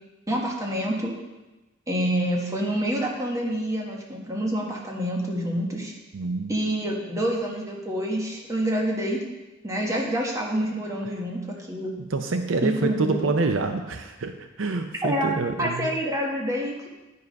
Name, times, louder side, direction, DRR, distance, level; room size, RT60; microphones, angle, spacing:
voice 1, 0.3-1.1 1.9-5.9 6.5-9.2 9.6-11.9 12.6-13.2 15.0-15.3 15.6-16.9, equal, 15° right, -1 dB, 1.4 m, -27 dB
voice 2, 6.1-6.5 12.1-16.0, right 3 dB, 70° right, 7 dB, 0.6 m, -27 dB
9.5 x 5.5 x 5.2 m, 1.1 s
head